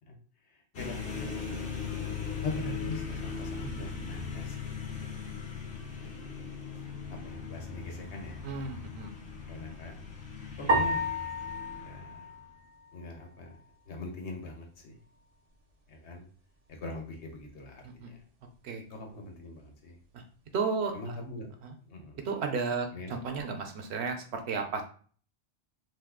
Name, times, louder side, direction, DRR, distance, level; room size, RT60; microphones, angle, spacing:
voice 1, 0.5-1.3 2.4-5.1 6.0-6.7 7.1-8.4 9.5-10.0 10.6-11.0 11.7-12.2 12.9-13.6 13.9-15.0 15.9-16.3 16.7-18.2 18.9-20.0 20.9-21.5 21.9-22.3 22.9-23.2, left 2 dB, 75° left, 2 dB, 1.1 m, -42 dB
sound 1, 0.7-12.5, left 6 dB, 60° left, 0.8 m, -39 dB
voice 2, 8.4-9.1 18.0-18.1 18.6-18.8 20.1-20.2 20.5-21.2 21.6-21.7 22.2-24.8, right 5 dB, 70° right, 5 dB, 0.9 m, -33 dB
sound 2, 10.7-13.2, equal, 50° right, 0.5 m, -31 dB
2.6 x 2.4 x 3.6 m, 0.43 s
omnidirectional pair, 1.2 m